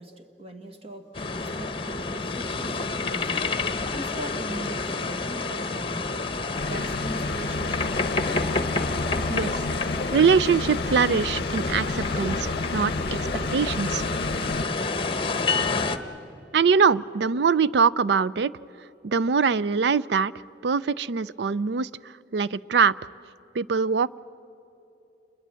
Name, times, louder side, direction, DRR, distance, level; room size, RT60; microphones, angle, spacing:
voice 1, 0.0-3.5 3.9-6.2 6.6-8.5 17.1-17.2, right 2 dB, 35° right, 6 dB, 1.6 m, -41 dB
sound 1, 1.1-16.0, left 3 dB, 30° left, 1.0 m, -29 dB
sound 2, 6.6-14.7, left 3 dB, 60° left, 0.7 m, -32 dB
voice 2, 10.1-12.9 13.2-14.1 16.5-18.5 19.0-20.3 20.6-21.9 22.3-22.9 23.5-24.2, right 5 dB, 65° right, 18 dB, 0.4 m, -23 dB
28.0 x 21.5 x 7.6 m, 3.0 s
head